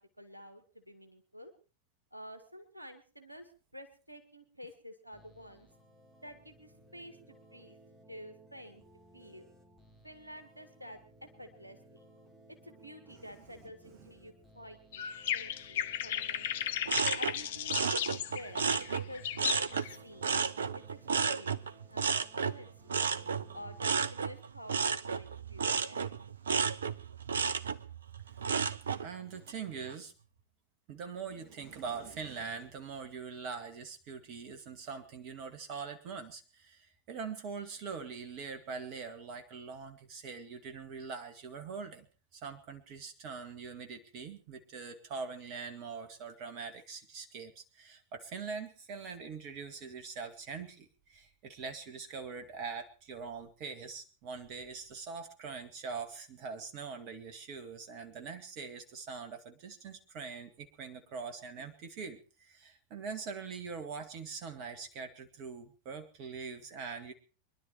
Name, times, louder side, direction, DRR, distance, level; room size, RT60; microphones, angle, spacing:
voice 1, 0.0-1.5 2.1-5.7 6.2-7.8 8.1-8.8 9.1-9.5 10.0-12.1 12.6-16.7 17.2-18.6 19.0-20.3 20.7-21.6 21.9-23.1 23.5-26.3, equal, 85° right, 8 dB, 1.9 m, -50 dB
sound 1, 5.1-23.8, right 1 dB, 15° right, 4.0 m, -60 dB
sound 2, 14.9-20.0, left 10 dB, 55° left, 0.8 m, -35 dB
sound 3, 16.9-19.9 20.2-29.1 29.5-29.9, right 6 dB, 70° right, 0.8 m, -32 dB
voice 2, 29.0-30.1 30.9-42.1 42.3-67.1, right 5 dB, 40° right, 7 dB, 2.2 m, -43 dB
24.0 x 11.5 x 4.5 m, 0.37 s
figure-of-eight pair, 90°, 0 cm